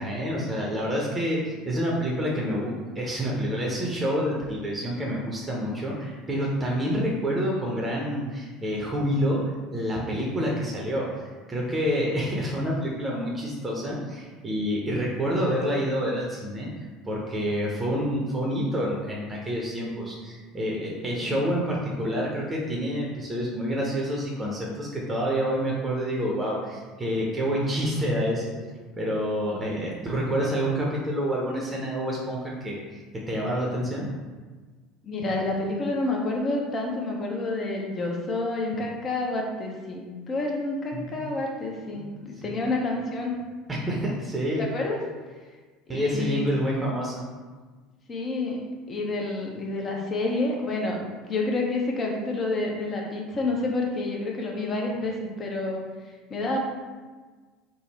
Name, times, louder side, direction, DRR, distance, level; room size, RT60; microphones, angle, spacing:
voice 1, 0.0-9.4 9.7-11.1 11.5-16.7 17.0-28.5 29.0-32.4 32.6-33.0 33.3-34.1 40.9-41.2 42.0-42.1 42.4-42.5 43.7-44.6 45.9-47.2, equal, 20° right, -3 dB, 0.7 m, -28 dB
voice 2, 29.5-29.9 35.0-43.4 44.6-45.0 45.9-46.5 48.1-48.6 48.9-51.0 51.3-55.8 56.3-56.6, left 2 dB, 35° left, 0 dB, 0.8 m, -29 dB
3.4 x 2.2 x 4.1 m, 1.4 s
hypercardioid pair, 70°, 0 cm